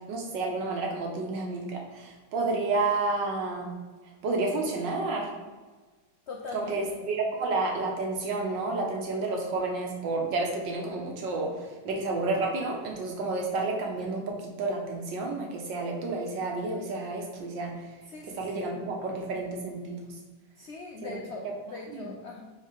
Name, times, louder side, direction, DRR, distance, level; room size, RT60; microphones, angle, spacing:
voice 1, 0.1-3.7 4.2-5.3 6.5-17.7 18.3-20.0 21.0-21.2 21.4-21.5 21.9-22.1, right 3 dB, 75° right, 0 dB, 1.7 m, -30 dB
voice 2, 6.3-7.1 18.1-18.8 20.6-22.5, left 4 dB, 90° left, 0 dB, 0.5 m, -41 dB
4.6 x 4.2 x 5.0 m, 1.3 s
omnidirectional pair, 2.0 m